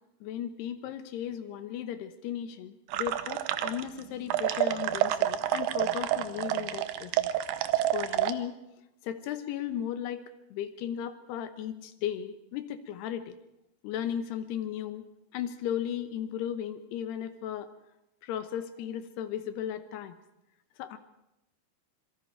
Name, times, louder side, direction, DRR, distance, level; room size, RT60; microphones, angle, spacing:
voice 1, 0.2-7.3 7.9-8.5 9.0-10.2 10.5-13.3 13.8-15.0 15.3-17.7 18.2-20.1 20.8-21.0, left 10 dB, 75° left, 10 dB, 3.0 m, -35 dB
sound 1, 2.9-4.0 4.3-8.3, right 13 dB, 80° right, 2.0 m, -28 dB
27.0 x 22.5 x 4.6 m, 0.88 s
omnidirectional pair, 5.1 m